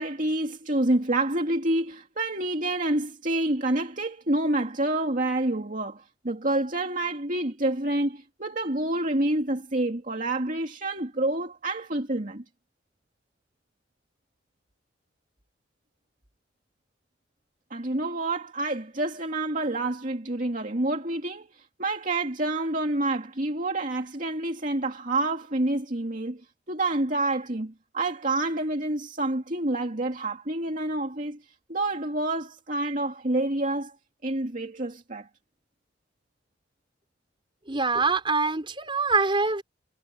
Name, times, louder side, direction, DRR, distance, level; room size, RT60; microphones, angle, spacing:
voice 1, 0.0-12.4 17.7-26.4 26.7-31.4 31.7-33.9 34.2-35.3, right 2 dB, 45° right, 2.5 m, -28 dB
voice 2, 37.7-39.6, right 4 dB, 30° right, 4.3 m, -24 dB
head